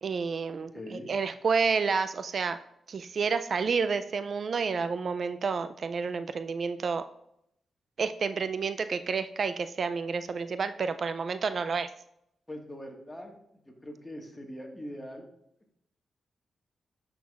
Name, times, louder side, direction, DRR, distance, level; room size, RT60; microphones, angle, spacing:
voice 1, 0.0-2.6 2.9-7.1 8.0-11.9, right 5 dB, 60° right, 11 dB, 0.3 m, -30 dB
voice 2, 0.7-1.1 12.5-13.3 13.7-15.2, left 1 dB, 15° left, 1 dB, 1.6 m, -42 dB
10.0 x 5.8 x 2.4 m, 0.77 s
cardioid pair, 65°, 0 cm